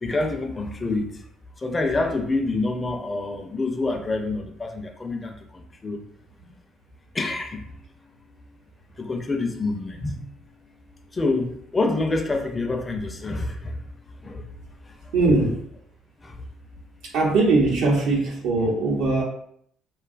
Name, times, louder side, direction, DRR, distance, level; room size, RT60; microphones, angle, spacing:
voice 1, 0.0-1.1 1.6-5.3 5.8-6.0 7.1-7.6 9.0-10.2 11.1-13.8 14.2-14.4 16.2-16.3, left 2 dB, 25° left, 4 dB, 0.4 m, -26 dB
voice 2, 15.1-15.5 17.1-19.2, right 3 dB, 80° right, -2 dB, 0.7 m, -20 dB
2.6 x 2.3 x 2.4 m, 0.67 s
cardioid pair, 90°, 0 cm